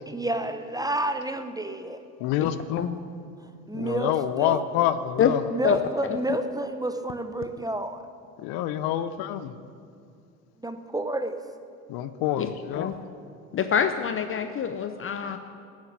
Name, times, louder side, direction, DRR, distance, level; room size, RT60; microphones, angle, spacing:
voice 1, 0.1-2.0 3.7-4.6 5.5-8.0 10.6-11.4, right 1 dB, 10° right, 8 dB, 0.7 m, -30 dB
voice 2, 2.2-2.9 3.7-5.4 8.4-9.5 11.9-12.9, left 11 dB, 60° left, 13 dB, 0.8 m, -27 dB
voice 3, 5.6-6.2 12.4-13.0 13.5-15.4, left 8 dB, 30° left, 9 dB, 0.6 m, -26 dB
10.5 x 7.4 x 9.2 m, 2.3 s
hypercardioid pair, 80°, 41 cm